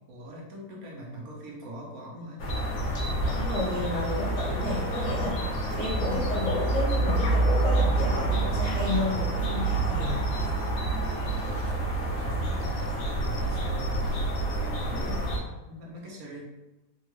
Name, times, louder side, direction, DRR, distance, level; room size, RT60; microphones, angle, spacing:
voice 1, 0.1-2.5 12.5-16.4, equal, 85° right, -2 dB, 1.3 m, -43 dB
sound 1, 2.4-15.4, right 2 dB, 75° left, 1.0 m, -27 dB
voice 2, 2.9-10.3, left 2 dB, 45° left, -7 dB, 1.4 m, -32 dB
3.6 x 2.3 x 2.9 m, 1.0 s
omnidirectional pair, 1.5 m